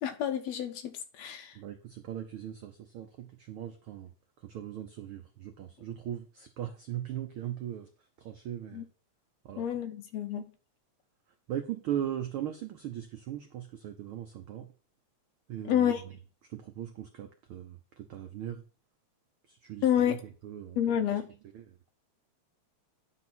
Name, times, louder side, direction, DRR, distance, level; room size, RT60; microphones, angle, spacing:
voice 1, 0.0-1.6 8.7-8.8 9.6-10.4 15.7-16.0 19.8-20.2 20.8-21.3, left 10 dB, 75° left, 1.8 m, -29 dB
voice 2, 1.5-8.9 9.4-9.7 10.4-10.5 11.5-14.7 15.5-18.6 19.4-20.8 21.1-21.9, right 11 dB, 85° right, 1.1 m, -39 dB
9.7 x 4.2 x 6.0 m
omnidirectional pair, 3.4 m